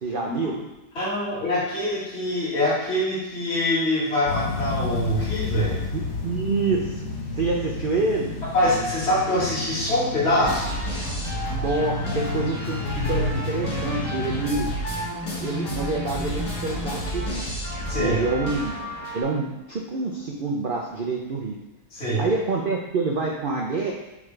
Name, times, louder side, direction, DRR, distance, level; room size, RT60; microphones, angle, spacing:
voice 1, 0.0-0.6 5.9-7.1 7.3-8.4 11.5-14.7 15.4-17.4 18.0-18.8 19.1-21.6 22.2-23.9, right 3 dB, 80° right, -1 dB, 0.4 m, -27 dB
voice 2, 1.0-5.8 8.5-10.7 17.9-18.2 21.9-22.3, left 1 dB, 40° left, -10 dB, 2.5 m, -24 dB
sound 1, 4.3-14.8, left 3 dB, 60° left, 1.4 m, -31 dB
sound 2, 10.4-19.2, equal, 85° left, 2.4 m, -30 dB
8.3 x 3.7 x 3.3 m, 1.0 s
omnidirectional pair, 1.8 m